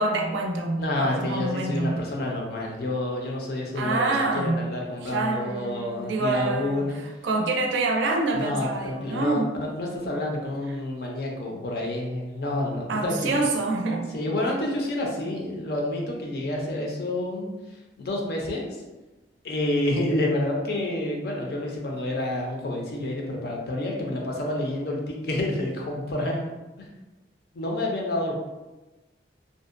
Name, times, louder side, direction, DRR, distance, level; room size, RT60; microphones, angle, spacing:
voice 1, 0.0-2.0 3.8-4.7 5.0-9.5 12.9-14.1, right 2 dB, 80° right, 3 dB, 0.4 m, -27 dB
voice 2, 0.8-7.0 8.3-13.3 14.1-17.5 18.0-18.6 19.4-26.5 27.5-28.4, left 1 dB, 55° left, -1 dB, 0.5 m, -28 dB
2.6 x 2.1 x 2.4 m, 1.1 s
head